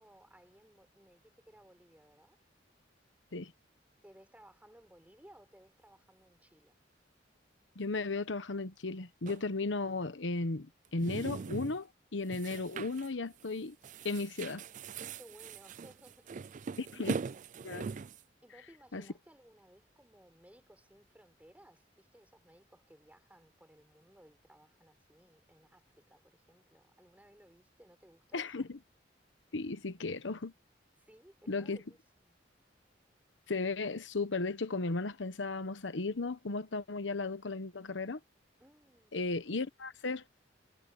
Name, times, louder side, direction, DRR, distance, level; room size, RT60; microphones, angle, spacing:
voice 1, 0.0-2.4 4.0-6.8 15.1-17.4 18.4-28.7 31.0-32.4 38.6-39.2, equal, 10° right, 5.1 m, -60 dB
voice 2, 7.8-13.8 14.0-14.6 16.8-17.2 17.6-17.9 18.9-19.0 28.3-28.8 29.5-30.5 31.5-31.8 33.5-38.2 39.1-40.2, left 3 dB, 85° left, 1.0 m, -35 dB
sound 1, 9.3-9.4 10.8-11.8 12.3-13.1 13.4-13.6 13.8-18.2, right 5 dB, 45° right, 0.4 m, -41 dB
head